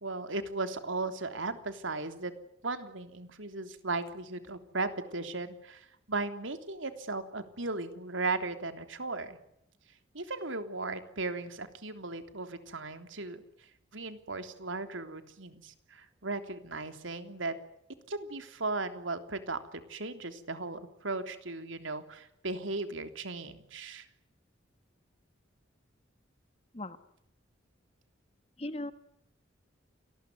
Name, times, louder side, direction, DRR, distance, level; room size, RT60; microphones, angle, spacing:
voice 1, 0.0-2.3 2.6-9.4 10.1-13.4 13.9-17.6 18.1-24.1, right 3 dB, 70° right, 8 dB, 3.4 m, -36 dB
voice 2, 28.6-28.9, left 1 dB, 30° left, 12 dB, 1.6 m, -37 dB
29.0 x 20.0 x 9.6 m, 0.75 s
head